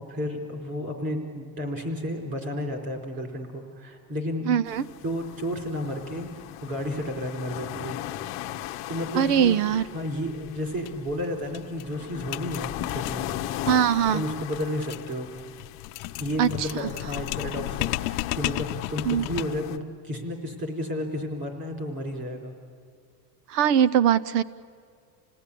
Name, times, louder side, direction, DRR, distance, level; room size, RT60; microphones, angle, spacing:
voice 1, 0.0-4.5 5.0-8.0 8.9-9.6 9.9-13.3 14.1-15.3 16.2-22.5, left 1 dB, 25° right, 3 dB, 4.4 m, -32 dB
voice 2, 4.5-4.8 9.1-9.8 13.7-14.2 16.4-16.9 19.0-19.2 23.5-24.4, right 9 dB, 80° right, 18 dB, 0.9 m, -22 dB
sound 1, 4.7-19.8, left 13 dB, 30° left, 0.8 m, -38 dB
sound 2, 10.8-10.9 11.2-11.3 11.5-19.7, left 18 dB, 75° left, 0.7 m, -34 dB
28.5 x 18.5 x 10.0 m, 2.2 s
supercardioid pair, 175°, 46 cm